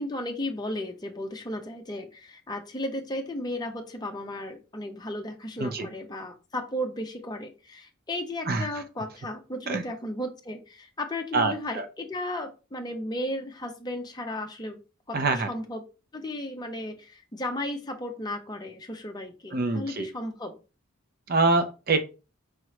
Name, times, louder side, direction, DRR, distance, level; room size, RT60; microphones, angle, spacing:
voice 1, 0.0-14.8 15.1-15.8 16.1-20.6, left 1 dB, 20° left, 0.6 m, -34 dB
voice 2, 11.3-11.8 15.1-15.5 19.5-20.1 21.3-22.0, right 3 dB, 45° right, 0.6 m, -25 dB
4.8 x 3.0 x 3.1 m
head